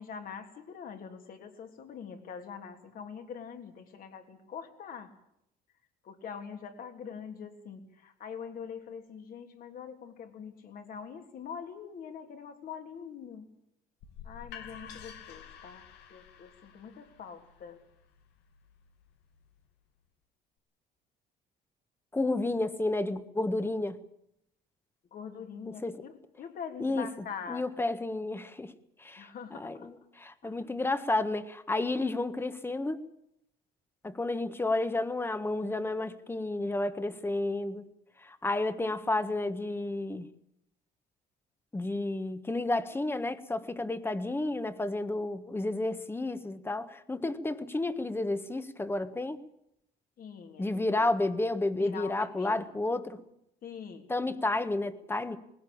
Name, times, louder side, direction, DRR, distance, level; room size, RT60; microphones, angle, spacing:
voice 1, 0.0-5.1 6.0-13.5 14.2-17.8 25.1-27.6 29.2-29.9 30.4-30.6 50.2-50.8 51.8-52.7 53.6-54.1, left 7 dB, 55° left, 3.4 m, -44 dB
sound 1, 14.0-19.8, left 8 dB, 85° left, 2.5 m, -50 dB
voice 2, 22.1-24.0 25.6-26.0 26.8-27.1 27.5-28.7 29.0-33.0 34.0-37.9 38.2-40.3 41.7-49.4 50.6-53.2 54.1-55.4, left 2 dB, 15° left, 1.6 m, -31 dB
20.0 x 17.0 x 8.8 m
cardioid pair, 110°, 17 cm